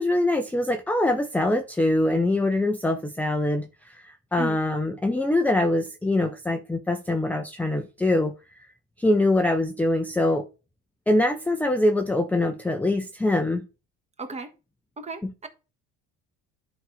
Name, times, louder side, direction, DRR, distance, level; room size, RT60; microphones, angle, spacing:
voice 1, 0.0-8.3 9.0-10.5 11.1-13.7 15.2-15.3, left 1 dB, 5° left, 0.6 m, -24 dB
voice 2, 14.2-14.5 15.0-15.5, right 3 dB, 20° right, 1.3 m, -34 dB
11.0 x 4.1 x 4.8 m
cardioid pair, 125°, 32 cm